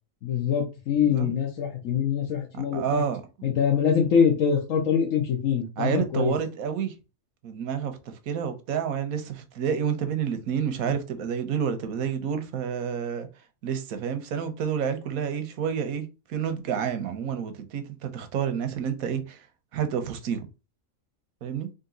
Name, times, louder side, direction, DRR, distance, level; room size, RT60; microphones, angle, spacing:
voice 1, 0.2-3.0 3.4-6.4, left 7 dB, 70° left, 1.2 m, -24 dB
voice 2, 2.7-3.2 5.8-6.9 7.4-8.0 8.3-13.3 13.6-19.4 19.7-20.5 21.4-21.7, right 7 dB, 90° right, 1.2 m, -29 dB
3.9 x 2.6 x 3.9 m
omnidirectional pair, 1.5 m